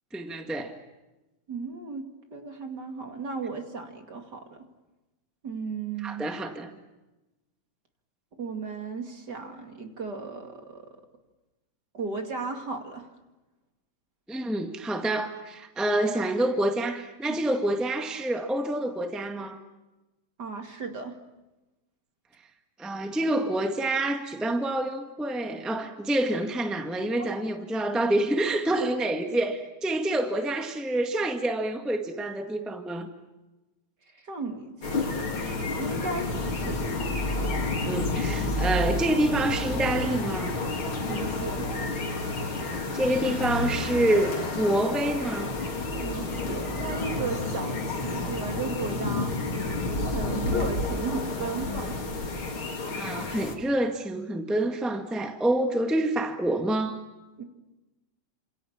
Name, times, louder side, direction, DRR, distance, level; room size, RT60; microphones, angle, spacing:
voice 1, 0.1-0.8 6.0-6.7 14.3-19.6 22.8-33.1 37.8-40.6 42.9-45.5 52.9-57.0, right 1 dB, ahead, 5 dB, 0.6 m, -27 dB
voice 2, 1.5-2.0 2.3-4.4 5.4-6.3 8.4-10.9 11.9-13.1 17.3-17.4 20.4-21.2 34.1-34.9 35.7-36.9 41.1-41.6 46.0-49.4 50.1-52.0 57.4-57.5, right 4 dB, 35° right, 5 dB, 2.5 m, -35 dB
sound 1, 34.8-53.6, left 2 dB, 40° left, 3.7 m, -30 dB
28.5 x 27.0 x 7.4 m, 1.1 s
omnidirectional pair, 3.9 m